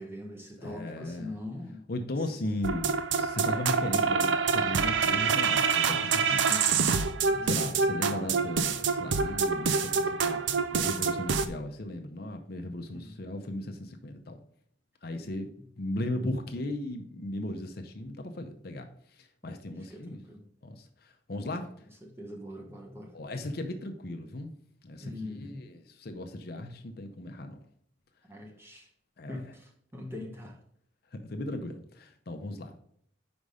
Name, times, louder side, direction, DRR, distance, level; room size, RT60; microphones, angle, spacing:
voice 1, 0.0-1.9 2.2-2.4 6.2-6.7 7.3-7.8 12.9-13.1 19.9-20.5 22.0-23.1 25.0-25.6 28.3-28.9 29.3-30.6, left 1 dB, 10° right, 1 dB, 0.9 m, -42 dB
voice 2, 0.6-1.3 1.9-6.5 7.4-14.4 15.0-15.5 15.8-18.9 19.2-20.2 20.6-21.7 23.1-24.5 24.8-27.6 29.2-29.4 31.1-32.7, left 1 dB, 50° left, 5 dB, 0.6 m, -37 dB
sound 1, 2.6-11.5, right 5 dB, 70° right, 0.5 m, -26 dB
5.2 x 4.9 x 5.3 m, 0.67 s
head